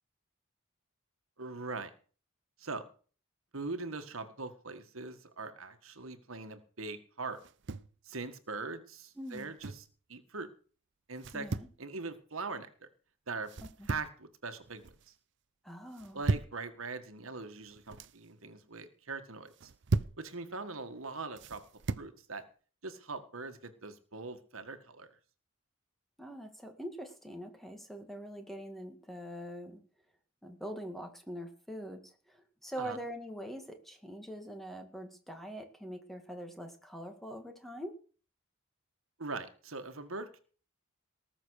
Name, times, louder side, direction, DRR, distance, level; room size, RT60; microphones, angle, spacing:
voice 1, 1.4-1.9 2.6-2.8 3.5-7.4 8.0-9.8 10.1-10.5 11.1-11.5 11.8-12.9 13.3-13.5 13.9-15.1 16.1-19.7 20.2-21.6 22.0-22.4 22.8-25.1 32.8-33.0 39.2-40.4, right 3 dB, 80° right, 9 dB, 1.8 m, -41 dB
sound 1, 7.4-8.0 9.3-9.9 11.2-11.8 13.5-14.2 14.6-15.1 15.9-16.6 17.6-18.2 19.5-20.2 21.4-22.1, right 3 dB, 60° right, 0.6 m, -36 dB
voice 2, 9.2-9.5 11.3-11.7 13.8-13.9 15.6-16.2 26.2-29.8 30.4-38.0, equal, ahead, 5 dB, 2.0 m, -43 dB
19.0 x 7.1 x 6.5 m, 0.41 s
head